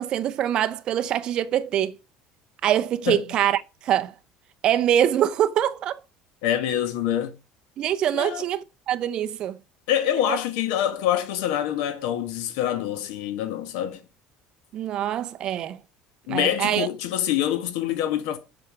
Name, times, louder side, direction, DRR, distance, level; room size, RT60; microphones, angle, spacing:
voice 1, 0.0-2.0 2.6-4.1 4.6-6.0 7.8-9.6 10.3-10.4 14.7-15.8 16.3-16.9, right 11 dB, 35° right, 0.7 m, -24 dB
voice 2, 6.4-7.4 8.1-8.4 9.9-14.0 16.3-18.4, left 11 dB, 80° left, 1.6 m, -25 dB
7.9 x 5.8 x 7.1 m
cardioid pair, 180°, 3 cm